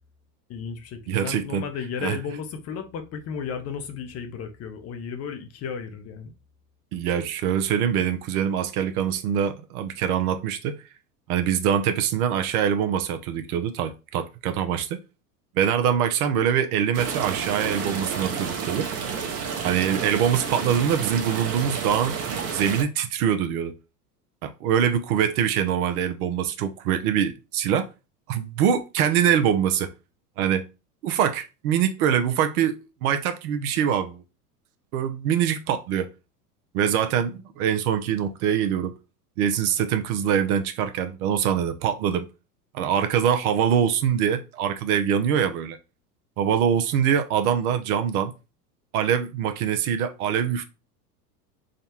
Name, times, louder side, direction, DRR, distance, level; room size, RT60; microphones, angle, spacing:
voice 1, 0.5-6.3, left 6 dB, 30° left, 0.7 m, -34 dB
voice 2, 1.1-1.6 2.0-2.2 6.9-10.8 11.3-15.0 15.6-18.9 19.6-23.7 24.4-27.9 28.3-29.9 30.4-30.6 31.0-34.2 34.9-36.1 36.7-38.9 39.4-42.3 42.7-45.8 46.4-48.3 48.9-50.6, right 8 dB, 60° right, 0.8 m, -24 dB
sound 1, 16.9-22.8, right 6 dB, 30° right, 0.9 m, -30 dB
3.7 x 2.3 x 4.2 m
hypercardioid pair, 100°, 50 cm